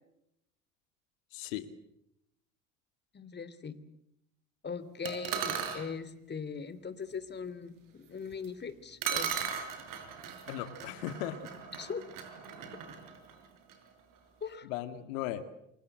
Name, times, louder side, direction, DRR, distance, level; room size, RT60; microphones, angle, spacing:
voice 1, 1.3-1.7 10.5-11.5 14.6-15.5, left 12 dB, 70° left, 10 dB, 2.1 m, -37 dB
voice 2, 3.1-3.8 4.6-9.5 11.8-12.0 14.4-14.7, left 5 dB, 25° left, 14 dB, 3.0 m, -40 dB
sound 1, 5.1-5.8 8.4-8.5 9.0-13.8, right 7 dB, 50° right, 6.7 m, -37 dB
29.0 x 24.0 x 7.9 m, 0.80 s
hypercardioid pair, 75°, 40 cm